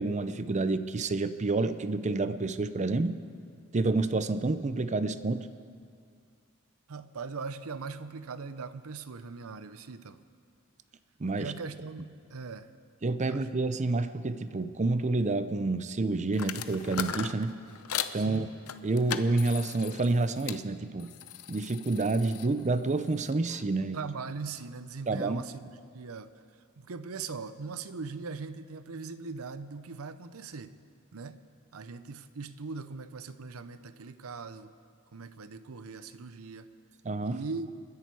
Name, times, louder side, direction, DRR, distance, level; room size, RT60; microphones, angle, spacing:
voice 1, 0.0-3.2 3.7-5.5 11.2-11.5 13.0-17.6 18.1-18.5 18.8-21.1 21.5-24.0 25.1-25.4 37.0-37.4, right 3 dB, 35° right, 12 dB, 0.6 m, -29 dB
voice 2, 6.9-10.2 11.4-12.7 13.3-13.5 18.2-18.5 23.8-26.3 26.8-30.7 31.1-31.4 31.7-34.7 35.1-36.7 37.2-37.7, right 4 dB, 90° right, 13 dB, 0.7 m, -40 dB
sound 1, 16.3-18.2 18.7-20.6 21.0-23.6, left 9 dB, 90° left, 0.7 m, -38 dB
28.5 x 10.5 x 4.7 m, 2.3 s
head